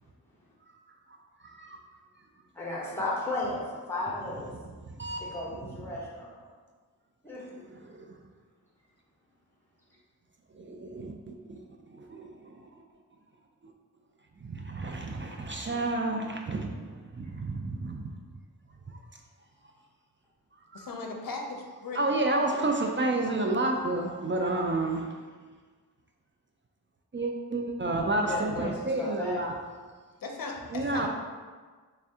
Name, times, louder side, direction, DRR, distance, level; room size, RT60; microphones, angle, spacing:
voice 1, 1.4-1.8 5.0-5.2 7.9-8.1 10.5-11.6 11.9-12.6 14.4-18.1 18.9-19.0 20.7-20.9 21.9-25.1 27.1-29.5 30.7-31.1, right 2 dB, 30° right, 1 dB, 0.4 m, -30 dB
voice 2, 2.5-4.5 5.2-6.4 7.2-7.4 28.2-29.4, left 2 dB, 5° left, -7 dB, 1.4 m, -34 dB
voice 3, 20.7-22.0 30.2-31.1, left 3 dB, 60° left, 2 dB, 0.6 m, -37 dB
3.3 x 2.6 x 3.5 m, 1.5 s
cardioid pair, 55°, 38 cm